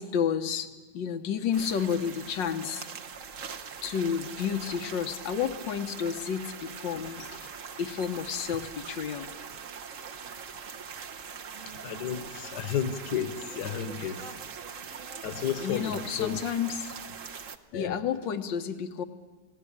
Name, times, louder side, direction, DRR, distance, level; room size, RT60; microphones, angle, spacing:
voice 1, 0.0-2.9 3.8-7.5 7.8-9.3 12.4-12.5 15.6-16.9 17.7-19.0, left 7 dB, 90° left, 8 dB, 1.8 m, -31 dB
sound 1, 1.5-17.6, right 6 dB, 50° right, 1.3 m, -42 dB
voice 2, 11.8-14.2 15.2-16.4 17.7-18.0, left 8 dB, 70° left, 10 dB, 1.7 m, -32 dB
29.5 x 18.5 x 8.8 m, 1.3 s
omnidirectional pair, 1.9 m